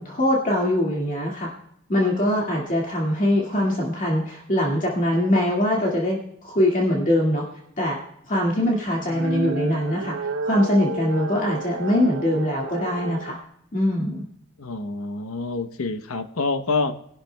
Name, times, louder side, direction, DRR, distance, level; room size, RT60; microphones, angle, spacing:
voice 1, 0.0-1.5 1.9-7.4 7.8-8.0 8.3-13.3 13.7-14.2, left 1 dB, 35° left, -3 dB, 2.0 m, -22 dB
sound 1, 8.9-13.3, right 3 dB, 55° right, 0.5 m, -31 dB
voice 2, 14.6-16.9, left 3 dB, 70° left, 9 dB, 0.9 m, -27 dB
22.5 x 11.5 x 2.2 m, 0.75 s
head